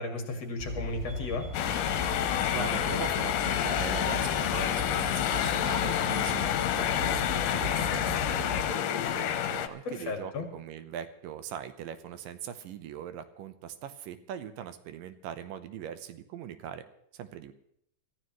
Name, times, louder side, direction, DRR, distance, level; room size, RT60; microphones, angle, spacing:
voice 1, 0.0-1.5 9.8-10.5, left 3 dB, 50° left, 3 dB, 3.1 m, -34 dB
sound 1, 0.6-8.6, left 1 dB, 20° right, 7.7 m, -38 dB
sound 2, 1.0-7.8, right 3 dB, 35° left, 1.1 m, -54 dB
sound 3, 1.5-9.7, left 10 dB, 80° left, 2.5 m, -29 dB
voice 2, 2.5-16.8 17.1-17.5, right 9 dB, 85° right, 11 dB, 2.6 m, -41 dB
25.5 x 14.0 x 3.1 m, 0.72 s
omnidirectional pair, 3.8 m